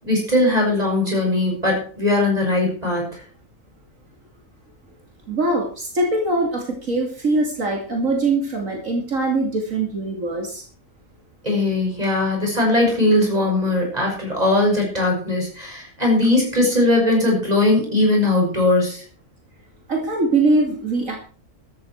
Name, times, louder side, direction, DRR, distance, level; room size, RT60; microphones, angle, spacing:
voice 1, 0.0-3.2 11.4-19.0, left 2 dB, 30° right, -1 dB, 6.7 m, -19 dB
voice 2, 5.3-10.6 19.9-21.2, right 2 dB, 75° right, 1 dB, 2.9 m, -22 dB
14.0 x 13.0 x 4.6 m, 0.40 s
omnidirectional pair, 1.4 m